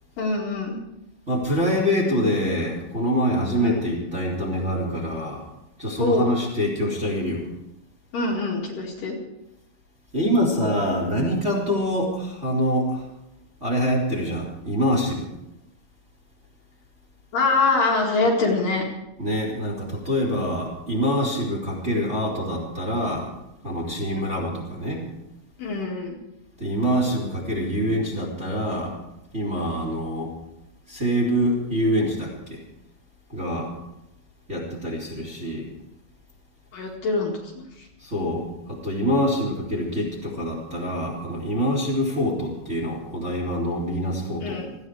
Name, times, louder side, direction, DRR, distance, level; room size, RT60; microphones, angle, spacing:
voice 1, 0.2-0.8 3.5-3.8 6.0-6.2 8.1-9.2 17.3-18.8 24.1-24.3 25.6-26.2 36.7-37.9 44.4-44.7, left 3 dB, 55° left, -2 dB, 3.4 m, -24 dB
voice 2, 1.3-5.4 5.8-7.5 10.1-13.0 13.6-15.3 19.2-23.3 23.6-25.0 26.6-28.9 29.3-30.3 30.9-32.6 33.3-33.7 34.5-35.7 38.0-44.6, equal, 15° right, -2 dB, 3.2 m, -25 dB
29.0 x 9.8 x 4.8 m, 0.90 s
omnidirectional pair, 5.2 m